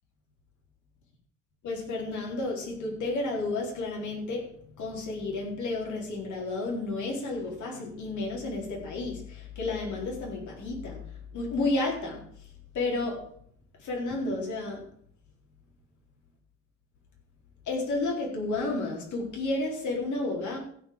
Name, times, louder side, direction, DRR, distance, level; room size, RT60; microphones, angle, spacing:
voice 1, 1.6-11.0 11.3-12.2 12.7-13.2 13.8-14.8 17.7-20.6, left 2 dB, 75° left, -1 dB, 4.2 m, -31 dB
15.5 x 5.6 x 7.4 m, 0.64 s
cardioid pair, 90°, 30 cm